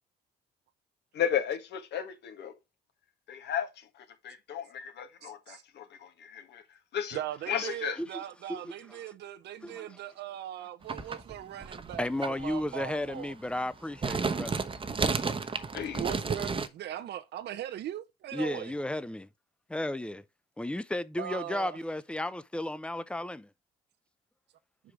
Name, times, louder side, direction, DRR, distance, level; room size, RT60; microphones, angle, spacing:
voice 1, 1.1-2.5 3.3-6.6 6.9-7.2 7.5-8.0 15.7-16.1, left 9 dB, 70° left, 1.6 m, -34 dB
voice 2, 5.2-5.6 7.1-13.4 16.0-18.7 21.2-21.8, right 12 dB, 70° right, 0.8 m, -39 dB
sound 1, 10.8-12.8 13.1-13.2 13.7-16.7, right 4 dB, 30° right, 1.0 m, -32 dB
voice 3, 12.0-14.6 18.3-19.3 19.7-20.2 20.6-23.5, left 1 dB, 5° left, 0.6 m, -34 dB
5.7 x 5.0 x 4.8 m
supercardioid pair, 70°, 18 cm